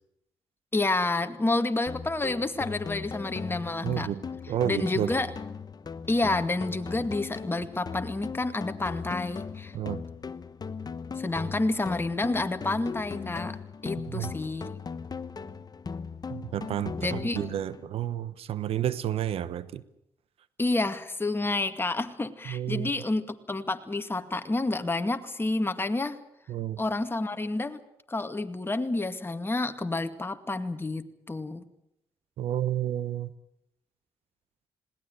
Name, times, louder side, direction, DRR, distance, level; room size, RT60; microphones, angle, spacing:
voice 1, 0.7-4.1 4.6-5.3 6.1-9.7 11.2-13.6 13.8-14.7 17.0-17.4 20.6-26.2 26.8-27.8 28.1-31.6, left 2 dB, 20° left, 2.2 m, -29 dB
sound 1, 1.9-17.9, left 5 dB, 40° left, 1.2 m, -38 dB
voice 2, 3.8-4.2 4.5-5.1 9.7-10.0 14.1-14.3 16.3-19.8 22.5-22.9 26.5-26.8 32.4-33.3, right 11 dB, 75° right, 1.1 m, -31 dB
21.0 x 18.0 x 9.2 m
supercardioid pair, 60°, 10 cm